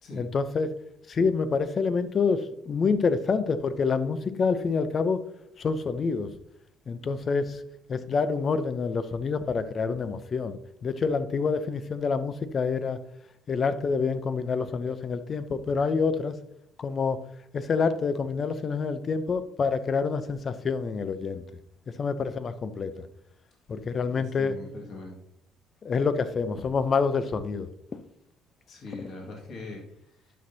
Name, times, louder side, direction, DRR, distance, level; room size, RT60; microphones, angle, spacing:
voice 1, 0.2-0.7 1.1-5.2 5.6-6.3 6.9-7.6 7.9-13.0 13.5-16.4 16.8-17.2 17.5-21.4 22.0-23.1 23.7-24.5 25.8-28.0 29.0-29.1, left 5 dB, 40° left, 12 dB, 0.7 m, -27 dB
voice 2, 24.0-25.2 28.7-30.3, left 3 dB, 60° left, -1 dB, 2.1 m, -42 dB
10.5 x 6.1 x 2.8 m, 0.72 s
cardioid pair, 95°, 0 cm